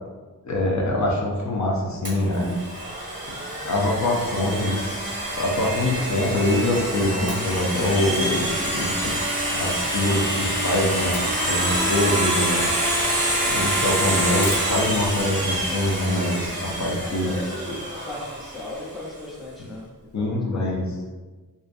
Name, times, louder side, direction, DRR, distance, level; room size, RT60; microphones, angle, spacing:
voice 1, 0.4-2.5 3.6-9.2 9.5-13.0 13.5-17.4 20.1-20.9, left 1 dB, 50° left, -2 dB, 0.5 m, -24 dB
Domestic sounds home sounds, 2.0-18.8, right 1 dB, 25° right, 1.1 m, -26 dB
voice 2, 17.0-20.7, left 2 dB, ahead, -5 dB, 0.5 m, -37 dB
2.4 x 2.1 x 2.5 m, 1.3 s
wide cardioid pair, 90°, 36 cm